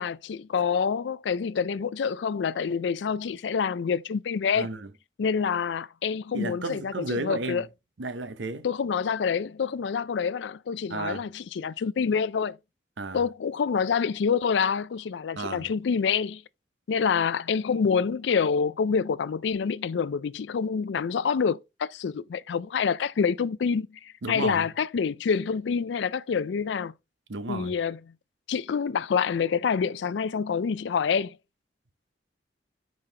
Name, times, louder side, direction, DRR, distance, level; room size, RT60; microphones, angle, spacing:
voice 1, 0.0-4.7 5.2-7.7 8.6-12.6 13.1-16.4 16.9-26.9 27.5-28.0 28.5-31.4, left 6 dB, 80° left, 0.4 m, -27 dB
voice 2, 4.5-4.9 6.3-7.7 8.0-8.7 10.9-11.2 13.0-13.2 15.4-15.7 24.2-24.7 27.3-27.7, right 2 dB, 85° right, 0.8 m, -33 dB
5.6 x 5.1 x 3.3 m
head